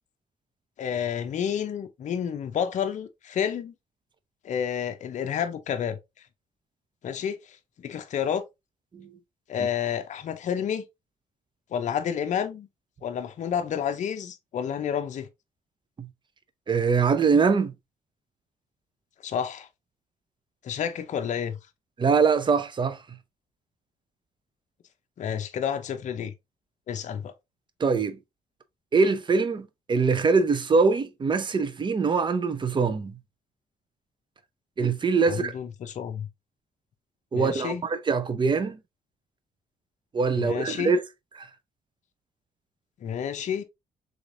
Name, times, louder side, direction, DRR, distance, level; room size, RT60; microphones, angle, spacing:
voice 1, 0.8-3.7 4.4-6.0 7.0-8.4 9.5-10.8 11.7-12.7 13.0-15.3 19.2-19.7 20.6-21.6 25.2-26.3 26.9-27.3 35.3-36.3 37.3-37.8 40.3-41.0 43.0-43.6, left 8 dB, 55° left, 0.5 m, -30 dB
voice 2, 16.7-17.7 22.0-23.0 27.8-28.2 28.9-33.1 34.8-35.5 37.3-38.8 40.1-41.0 41.4-41.5, right 5 dB, 30° right, 0.6 m, -23 dB
3.8 x 3.2 x 2.5 m
cardioid pair, 85°, 15 cm